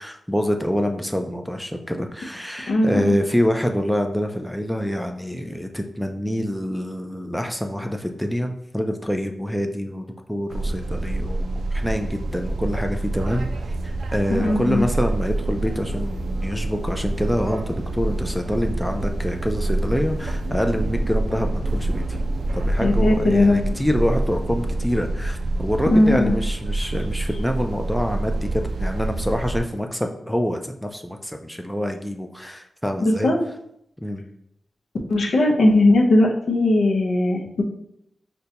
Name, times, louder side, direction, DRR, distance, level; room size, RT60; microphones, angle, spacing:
voice 1, 0.0-13.5 13.8-22.2 22.5-33.3 34.0-34.2, equal, ahead, 4 dB, 0.3 m, -26 dB
voice 2, 2.7-3.1 14.3-14.8 22.8-23.6 25.9-26.3 33.0-33.4 35.1-37.6, left 2 dB, 80° left, 1 dB, 0.6 m, -18 dB
sound 1, 10.5-29.6, right 2 dB, 90° right, 0.3 m, -26 dB
5.1 x 2.2 x 2.8 m, 0.75 s
wide cardioid pair, 105°, 0 cm